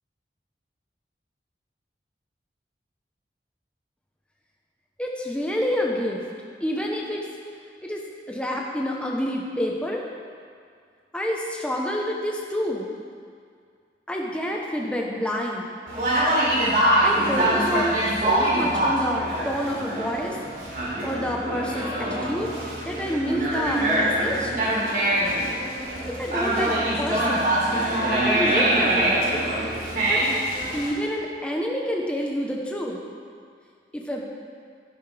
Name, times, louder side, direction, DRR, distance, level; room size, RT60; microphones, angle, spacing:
voice 1, 5.0-6.2 6.6-7.3 7.8-8.0 8.3-10.0 11.1-12.9 14.1-15.7 17.0-20.4 21.0-22.5 22.8-24.5 26.1-27.5 28.2-29.3 30.1-30.2 30.7-33.0 33.9-34.3, equal, 5° left, -1 dB, 0.9 m, -28 dB
Conversation, 15.9-30.9, right 1 dB, 50° right, 3.1 m, -24 dB
12.5 x 10.5 x 3.4 m, 2.1 s
head